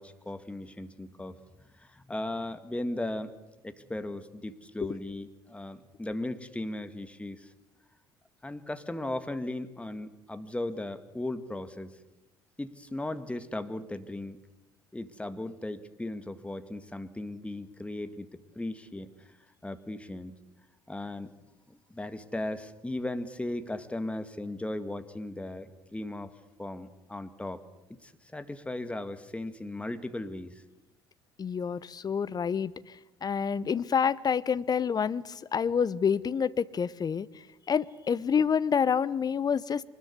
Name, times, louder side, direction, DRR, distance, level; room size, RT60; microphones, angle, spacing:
voice 1, 0.0-1.4 1.8-3.3 3.6-7.5 8.4-12.0 12.6-14.4 14.9-19.3 19.6-20.3 20.9-21.3 21.7-26.3 26.6-27.6 27.9-30.6, left 1 dB, 10° left, 10 dB, 2.0 m, -37 dB
voice 2, 31.4-32.7 33.2-37.3 37.7-39.8, left 7 dB, 35° left, 17 dB, 0.9 m, -27 dB
24.0 x 20.5 x 8.2 m, 0.94 s
figure-of-eight pair, 55°, 12 cm